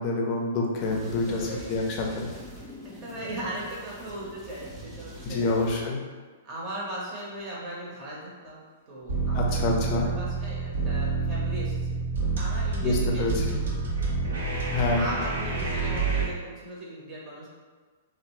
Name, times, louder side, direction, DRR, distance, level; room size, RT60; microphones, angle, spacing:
voice 1, 0.0-2.3 5.2-6.0 9.3-10.1 12.8-13.6 14.7-15.1, left 2 dB, 40° left, 0 dB, 0.5 m, -27 dB
sound 1, 0.8-5.8, right 1 dB, 10° right, 0.5 m, -44 dB
voice 2, 1.0-1.7 3.0-5.5 6.4-12.0 12.4-13.7 14.9-17.5, right 1 dB, 30° right, -5 dB, 0.9 m, -38 dB
sound 2, 9.1-16.3, right 4 dB, 65° right, 0.7 m, -28 dB
2.7 x 2.0 x 3.0 m, 1.4 s
figure-of-eight pair, 105°, 0 cm